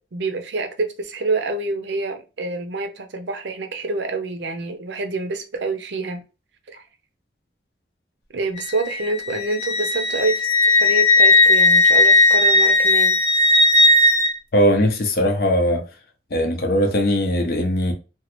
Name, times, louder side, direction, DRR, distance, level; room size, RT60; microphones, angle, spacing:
voice 1, 0.0-6.2 6.7-6.8 8.3-13.2, right 3 dB, 70° right, 0.5 m, -27 dB
Wind instrument woodwind instrument, 8.6-14.3, left 2 dB, 85° left, 1.0 m, -16 dB
voice 2, 14.5-15.8 16.3-17.9, equal, 50° left, 0.5 m, -19 dB
3.0 x 2.3 x 2.9 m
head